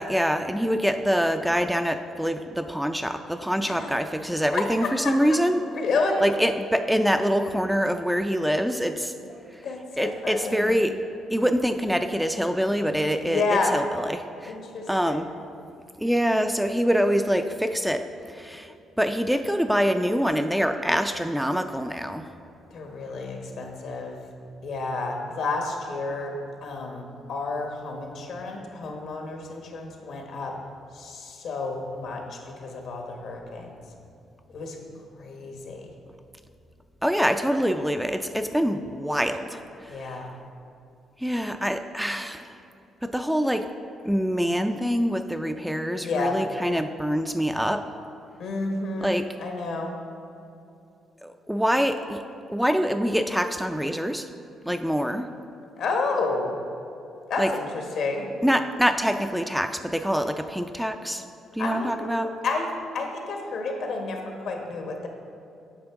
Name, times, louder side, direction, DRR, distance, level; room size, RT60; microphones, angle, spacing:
voice 1, 0.0-5.6 6.2-9.1 9.5-9.6 10.0-11.0 11.3-14.5 14.9-15.3 16.0-22.3 37.0-40.2 41.2-42.6 43.0-43.7 44.0-47.9 49.0-49.3 51.2-52.2 52.5-54.3 54.6-55.3 57.4-57.5 58.4-61.3 61.5-62.3, equal, ahead, 7 dB, 0.3 m, -25 dB
voice 2, 3.6-3.9 4.5-5.4 5.7-6.3 9.6-10.7 13.2-13.7 14.5-15.2 22.7-24.2 24.6-26.3 26.6-30.5 30.9-33.7 34.5-34.8 35.2-35.9 39.9-40.3 46.0-46.4 48.4-49.9 55.8-56.6 57.3-58.3 61.6-62.6 62.9-65.1, left 3 dB, 75° left, 2 dB, 1.2 m, -30 dB
8.7 x 5.8 x 3.5 m, 2.7 s
cardioid pair, 90°, 0 cm